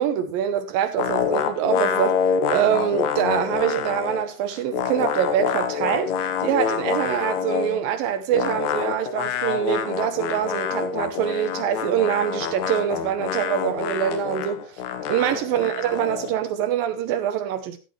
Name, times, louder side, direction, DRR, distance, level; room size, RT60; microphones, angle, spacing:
voice 1, 0.0-14.8 15.1-17.8, right 10 dB, 75° right, 2.3 m, -24 dB
sound 1, 1.0-4.3 4.5-7.8 8.3-16.3, left 7 dB, 90° left, 3.2 m, -26 dB
12.0 x 11.5 x 3.1 m
omnidirectional pair, 4.6 m